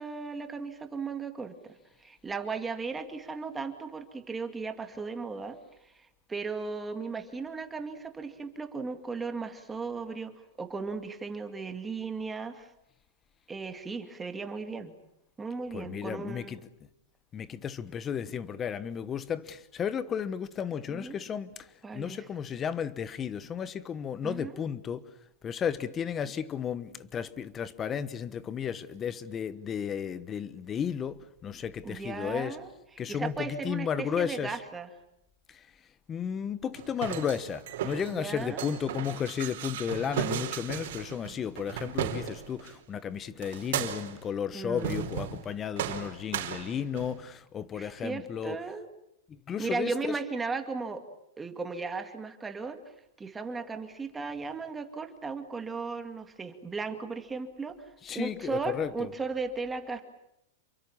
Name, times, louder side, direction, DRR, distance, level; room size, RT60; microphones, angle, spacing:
voice 1, 0.0-1.7 2.0-5.6 5.9-10.3 10.6-12.7 13.5-14.9 15.4-16.6 20.9-21.2 21.8-22.3 24.2-24.6 31.8-34.9 38.1-38.7 44.5-45.1 47.7-48.9 49.6-51.0 51.4-52.8 53.2-60.0, right 4 dB, 10° right, 2.2 m, -36 dB
voice 2, 15.7-16.6 17.3-21.5 21.9-25.1 25.4-32.6 33.0-34.6 36.1-48.6 49.5-49.9 58.0-59.1, left 8 dB, 20° left, 1.2 m, -33 dB
sound 1, 36.7-42.7 43.4-44.3 44.8-45.5 45.8-47.2, right 10 dB, 60° right, 4.5 m, -35 dB
28.5 x 23.5 x 7.3 m
supercardioid pair, 160°, 0 cm